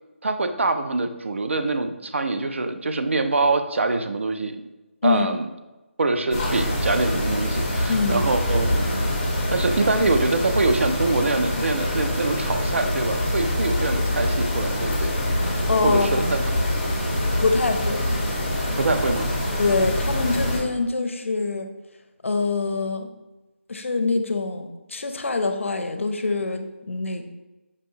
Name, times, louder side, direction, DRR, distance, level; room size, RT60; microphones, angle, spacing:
voice 1, 0.2-4.5 5.0-5.5 6.0-9.1 9.5-15.1 15.8-16.6 18.8-19.4, right 3 dB, 70° right, 8 dB, 0.4 m, -24 dB
sound 1, 6.3-20.6, left 1 dB, 30° left, 0.8 m, -25 dB
voice 2, 7.9-8.2 15.7-16.1 17.4-18.0 19.6-21.7 22.2-23.1 23.7-27.3, left 3 dB, 75° left, 7 dB, 0.5 m, -24 dB
5.2 x 2.7 x 2.7 m, 1.1 s
figure-of-eight pair, 175°, 7 cm